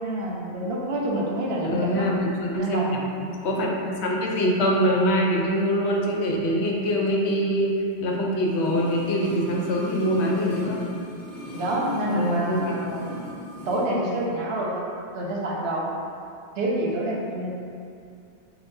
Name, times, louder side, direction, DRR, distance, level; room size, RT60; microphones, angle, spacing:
voice 1, 0.0-2.1 2.6-2.8 11.5-13.0 13.7-14.8 15.1-15.9 16.6-17.5, right 1 dB, 70° right, -3 dB, 0.9 m, -27 dB
voice 2, 1.6-10.8 12.0-12.7, equal, 85° left, -1 dB, 0.9 m, -24 dB
sound 1, 8.4-13.9 14.2-14.3, equal, 50° left, 0.9 m, -38 dB
5.7 x 2.3 x 2.6 m, 2.5 s
omnidirectional pair, 1.1 m